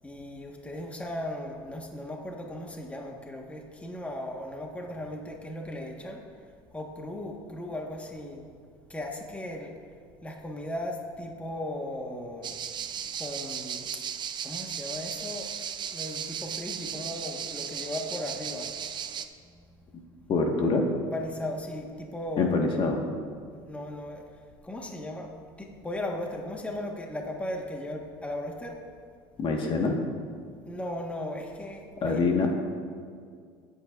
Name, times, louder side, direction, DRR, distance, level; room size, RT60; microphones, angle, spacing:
voice 1, 0.0-6.2 6.7-8.5 8.9-9.7 10.2-12.6 13.2-13.9 14.4-15.5 15.9-18.8 21.1-22.6 23.5-24.2 24.6-25.3 25.6-28.8 30.6-32.3, left 1 dB, 10° left, 1 dB, 1.5 m, -37 dB
sound 1, 12.4-19.2, right 8 dB, 40° right, 0.6 m, -36 dB
voice 2, 20.3-20.9 22.4-23.0 29.4-30.0 32.0-32.5, left 3 dB, 45° left, 2 dB, 1.6 m, -25 dB
25.0 x 8.3 x 2.5 m, 2.1 s
supercardioid pair, 85°, 12 cm